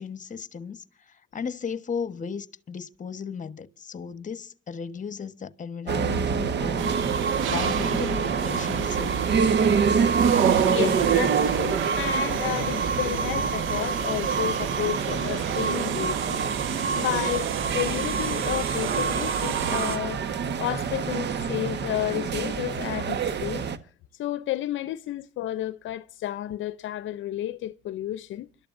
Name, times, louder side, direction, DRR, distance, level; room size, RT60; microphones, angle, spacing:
voice 1, 0.0-6.9 7.5-9.4, left 6 dB, 40° left, 1.3 m, -35 dB
sound 1, 5.9-23.8, right 7 dB, 60° right, 1.4 m, -26 dB
sound 2, 6.8-20.0, right 5 dB, 85° right, 1.6 m, -30 dB
voice 2, 10.7-20.2 20.6-23.7 24.1-28.5, left 13 dB, 75° left, 0.6 m, -32 dB
30.0 x 12.5 x 2.6 m
cardioid pair, 90°, 20 cm